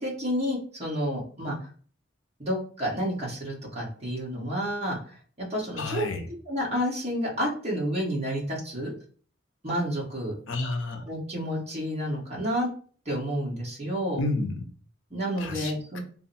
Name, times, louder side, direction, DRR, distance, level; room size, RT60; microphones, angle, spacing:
voice 1, 0.0-1.7 2.4-6.1 6.5-8.9 9.6-10.3 11.1-12.7 13.0-14.2 15.1-16.0, equal, 30° right, -4 dB, 1.5 m, -30 dB
voice 2, 5.8-6.2 10.5-11.0 14.2-14.6 15.4-16.0, left 2 dB, 65° left, 6 dB, 0.6 m, -30 dB
3.7 x 2.2 x 4.1 m, 0.43 s
head